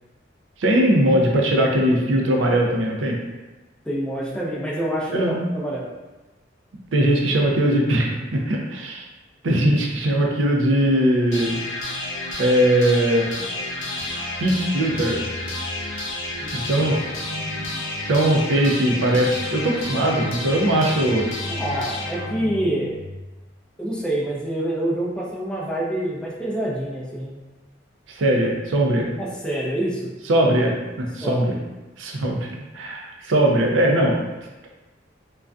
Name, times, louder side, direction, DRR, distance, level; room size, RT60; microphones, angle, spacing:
voice 1, 0.6-3.2 5.1-5.3 6.9-9.0 9.4-11.5 12.4-13.5 14.4-15.2 16.5-17.0 17.3-17.6 18.1-21.3 28.1-29.1 30.3-31.5 32.0-32.5 32.7-34.2, right 1 dB, 75° right, 0 dB, 0.5 m, -20 dB
voice 2, 3.8-5.9 16.4-16.9 21.5-23.0 23.8-27.4 29.2-30.1 31.2-31.5, right 1 dB, 5° left, -5 dB, 0.4 m, -27 dB
sound 1, 11.3-23.3, left 2 dB, 80° left, 0.5 m, -30 dB
2.5 x 2.2 x 2.3 m, 1.1 s
head